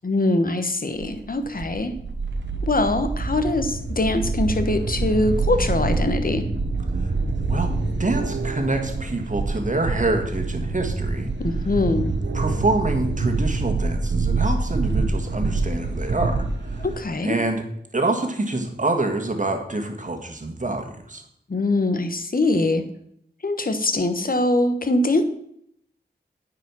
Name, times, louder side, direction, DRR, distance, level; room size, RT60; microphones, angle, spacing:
voice 1, 0.0-1.9 2.6-6.5 11.4-12.1 16.8-17.3 21.5-22.8 23.4-25.2, left 2 dB, 50° left, 8 dB, 1.1 m, -23 dB
sound 1, 1.0-17.0, right 3 dB, 80° right, 1.1 m, -26 dB
voice 2, 7.5-11.3 12.3-16.8 17.2-17.6 17.9-21.2, right 2 dB, 45° right, 4 dB, 1.7 m, -26 dB
9.3 x 5.0 x 6.2 m, 0.71 s
wide cardioid pair, 50°, 18 cm